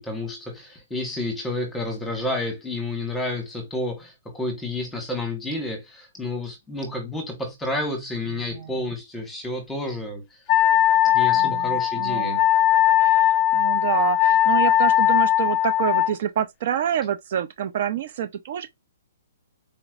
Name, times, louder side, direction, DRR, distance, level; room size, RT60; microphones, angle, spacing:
voice 1, 0.0-10.4 11.1-12.4, left 2 dB, 5° left, 1.2 m, -30 dB
Wind instrument woodwind instrument, 10.5-16.1, left 12 dB, 25° left, 0.6 m, -19 dB
voice 2, 11.3-12.4 12.9-18.7, right 10 dB, 45° right, 0.5 m, -27 dB
4.2 x 3.0 x 2.4 m
hypercardioid pair, 160°, 0 cm